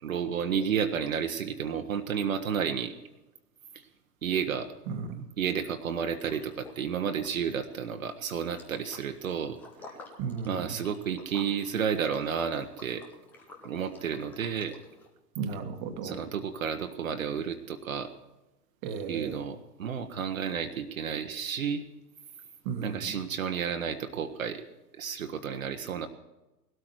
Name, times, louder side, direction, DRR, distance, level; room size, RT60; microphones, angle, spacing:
voice 1, 0.0-2.9 3.7-3.8 4.2-4.7 5.4-9.6 9.9-10.0 10.4-13.0 13.6-14.8 16.0-18.1 19.1-21.8 22.8-24.6 25.0-26.1, right 7 dB, 55° right, 6 dB, 1.3 m, -31 dB
voice 2, 4.9-5.3 10.2-10.7 15.3-16.3 18.8-19.4 22.6-23.2, right 5 dB, 25° right, 8 dB, 1.4 m, -35 dB
Liquid, 6.2-6.9 7.1-15.1, left 3 dB, 5° left, 0.5 m, -51 dB
19.5 x 12.5 x 4.6 m, 1.0 s
figure-of-eight pair, 115°, 50 cm